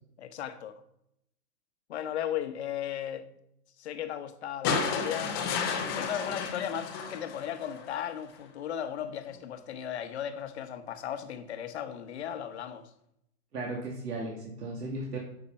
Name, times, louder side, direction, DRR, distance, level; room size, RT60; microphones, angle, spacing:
voice 1, 0.2-0.8 1.9-3.3 3.8-12.9, left 10 dB, 45° left, 1.0 m, -36 dB
sound 1, 4.6-7.9 9.3-9.4, left 5 dB, 15° left, 0.7 m, -32 dB
voice 2, 13.5-15.2, right 2 dB, 80° right, 2.7 m, -36 dB
8.8 x 6.7 x 5.4 m
hypercardioid pair, 155°, 46 cm